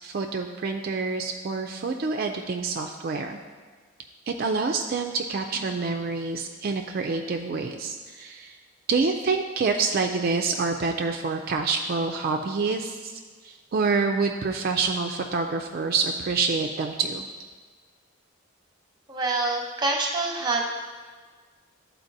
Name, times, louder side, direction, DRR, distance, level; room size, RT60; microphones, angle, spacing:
voice 1, 0.0-3.4 4.3-8.6 8.9-17.3, right 4 dB, 45° right, 4 dB, 0.3 m, -27 dB
voice 2, 19.1-20.7, right 2 dB, 20° right, 1 dB, 0.8 m, -26 dB
12.0 x 4.4 x 2.7 m, 1.5 s
head